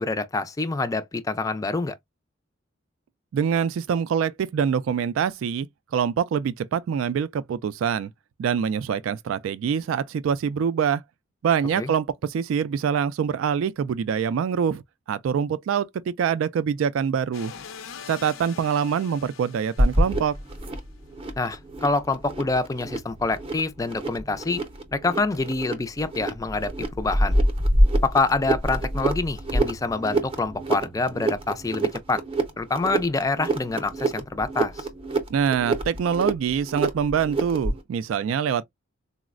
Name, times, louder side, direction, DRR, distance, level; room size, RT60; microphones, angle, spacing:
voice 1, 0.0-1.9 11.8-11.9 21.4-24.6 24.9-27.3 28.0-32.2 32.6-34.9, left 3 dB, 15° left, 0.3 m, -26 dB
voice 2, 3.3-5.7 5.9-8.1 8.4-11.0 11.4-14.8 15.1-17.5 18.1-20.3 35.3-38.6, right 7 dB, 85° right, 0.3 m, -25 dB
sound 1, 17.3-20.8, left 7 dB, 85° left, 0.5 m, -43 dB
sound 2, 19.8-37.8, right 1 dB, 30° right, 0.6 m, -26 dB
3.9 x 2.1 x 2.4 m
head